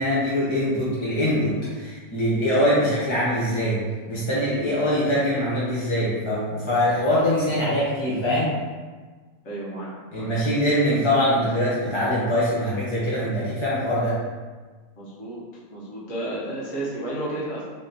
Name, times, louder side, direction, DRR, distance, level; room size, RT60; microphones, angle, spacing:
voice 1, 0.0-3.8 4.1-8.5 10.1-14.1, equal, 25° left, -9 dB, 0.8 m, -23 dB
voice 2, 9.4-10.3 15.0-15.4 15.7-17.6, right 1 dB, 65° left, -8 dB, 1.6 m, -32 dB
3.5 x 2.9 x 3.9 m, 1.4 s
omnidirectional pair, 1.5 m